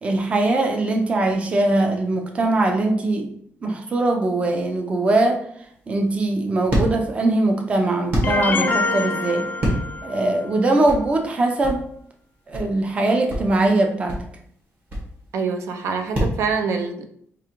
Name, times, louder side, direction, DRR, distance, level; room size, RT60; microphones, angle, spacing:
voice 1, 0.0-3.3 3.6-5.4 5.9-9.5 10.0-11.9 12.5-14.2, right 2 dB, 25° right, 3 dB, 0.4 m, -21 dB
sound 1, 5.6-16.4, equal, 45° right, 1.3 m, -28 dB
sound 2, 8.2-10.3, left 3 dB, 40° left, 0.3 m, -25 dB
voice 2, 15.3-17.1, right 5 dB, 80° right, 5 dB, 0.5 m, -25 dB
4.8 x 2.4 x 2.9 m, 0.67 s
wide cardioid pair, 175°, 5 cm